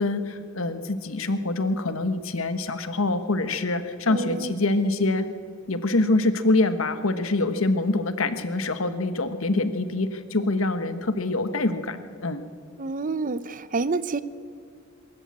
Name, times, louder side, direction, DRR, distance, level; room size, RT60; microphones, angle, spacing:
voice 1, 0.0-5.3 5.7-12.4, left 2 dB, 90° left, 10 dB, 1.3 m, -25 dB
voice 2, 4.1-4.5 12.8-14.2, right 3 dB, 40° right, 15 dB, 0.7 m, -28 dB
22.5 x 13.5 x 8.6 m, 2.2 s
head